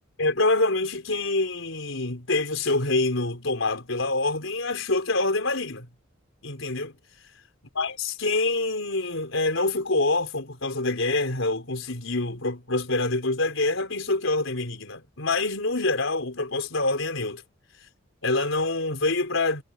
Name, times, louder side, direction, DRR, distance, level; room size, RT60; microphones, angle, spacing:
voice 1, 0.2-5.9 6.4-6.9 7.7-17.4 18.2-19.6, left 2 dB, 85° left, 4.4 m, -26 dB
head